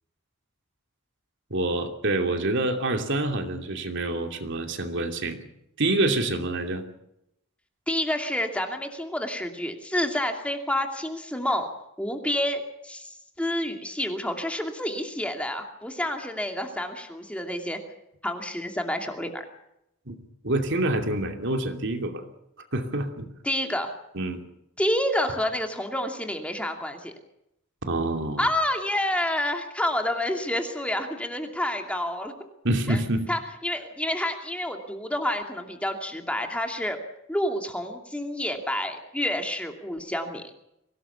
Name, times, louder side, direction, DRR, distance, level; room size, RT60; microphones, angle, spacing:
voice 1, 1.5-5.4 5.8-6.8 20.1-20.2 20.4-22.2 22.7-23.3 24.1-24.4 27.9-28.4 32.6-33.3, right 2 dB, 60° right, 5 dB, 2.8 m, -26 dB
voice 2, 7.9-11.7 12.0-17.8 18.2-19.4 23.4-23.9 24.8-27.1 28.4-32.3 32.9-33.0 33.3-37.0 37.3-40.4, left 1 dB, 5° left, 4 dB, 2.6 m, -29 dB
24.0 x 18.0 x 6.9 m, 0.81 s
head